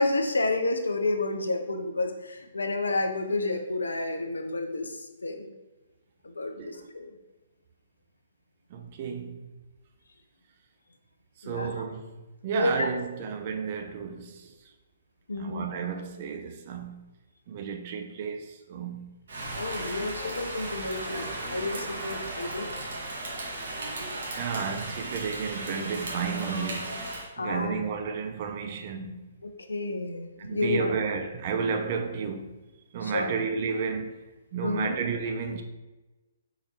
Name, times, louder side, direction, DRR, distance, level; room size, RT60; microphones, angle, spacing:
voice 1, 0.0-5.5 6.2-7.2 11.4-11.7 12.5-12.9 15.3-15.6 19.5-22.7 27.4-27.8 29.6-30.9 33.0-33.3 34.6-35.0, left 2 dB, 70° left, 0.5 m, -30 dB
voice 2, 8.7-9.4 11.4-12.1 12.4-14.5 15.4-17.1 17.5-19.1 24.4-29.3 30.4-32.6 32.9-34.2 34.5-35.6, right 6 dB, 35° right, 0.5 m, -32 dB
Rain, 19.3-27.3, right 2 dB, 55° right, 1.1 m, -36 dB
4.4 x 3.8 x 2.9 m
figure-of-eight pair, 125°, 0 cm